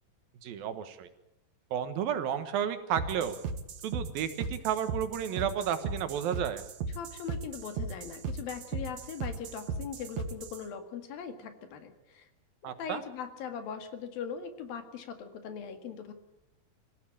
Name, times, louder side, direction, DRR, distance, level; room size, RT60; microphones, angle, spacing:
voice 1, 0.4-1.1 1.7-3.3 3.8-6.6 12.6-13.0, right 9 dB, 75° right, 10 dB, 3.2 m, -32 dB
sound 1, 3.0-10.6, right 4 dB, 55° right, 2.5 m, -37 dB
voice 2, 7.0-12.3 12.6-16.1, left 7 dB, 80° left, 8 dB, 3.8 m, -40 dB
25.5 x 16.0 x 8.8 m, 0.89 s
omnidirectional pair, 4.2 m